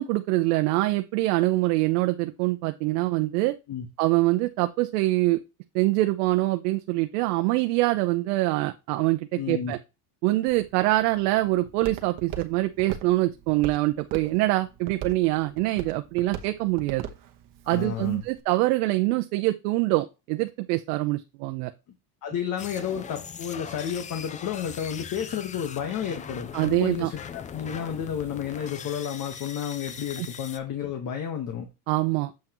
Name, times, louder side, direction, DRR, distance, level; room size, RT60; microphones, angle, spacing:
voice 1, 0.0-3.6 4.0-5.4 5.7-9.8 10.2-17.0 17.7-21.7 26.5-27.1 30.2-30.3 31.9-32.3, right 19 dB, 80° right, 8 dB, 0.7 m, -24 dB
voice 2, 9.4-9.7 17.6-18.2 22.2-31.7, left 8 dB, 45° left, 4 dB, 1.4 m, -31 dB
Walk footsteps, 10.5-18.4, right 9 dB, 45° right, 1.2 m, -41 dB
sound 1, 22.6-30.6, left 7 dB, 20° left, 0.3 m, -40 dB
7.7 x 5.6 x 3.0 m, 0.27 s
supercardioid pair, 120°, 46 cm